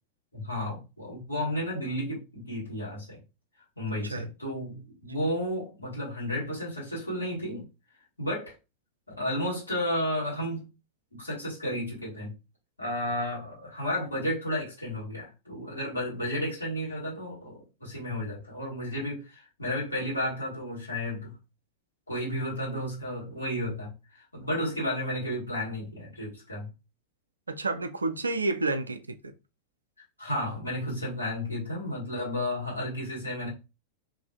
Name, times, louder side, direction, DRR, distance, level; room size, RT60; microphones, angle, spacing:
voice 1, 0.3-3.2 3.8-7.7 8.2-8.5 9.2-10.7 11.1-12.3 12.8-21.3 22.1-26.7 30.2-33.5, left 1 dB, 80° left, 1.6 m, -32 dB
voice 2, 27.5-29.3, right 3 dB, 80° right, 0.3 m, -30 dB
2.7 x 2.4 x 2.7 m
figure-of-eight pair, 90°, 0 cm